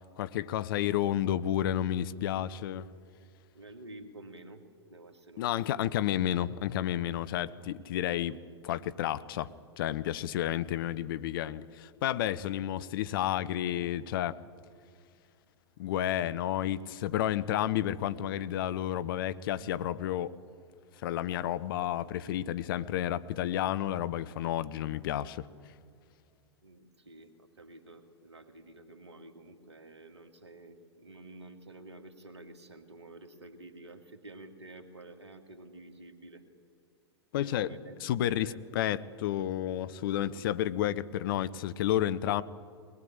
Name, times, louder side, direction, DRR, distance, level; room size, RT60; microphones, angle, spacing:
voice 1, 0.2-2.9 5.4-8.4 8.6-9.5 9.8-14.4 15.8-20.3 21.0-25.5 37.3-37.7 38.0-42.4, left 12 dB, 50° left, 0.7 m, -31 dB
voice 2, 3.5-5.6 17.3-17.4 26.6-36.4 37.3-38.6 40.2-40.6, right 2 dB, 75° right, 2.0 m, -50 dB
22.0 x 19.0 x 8.9 m
figure-of-eight pair, 95°, 14 cm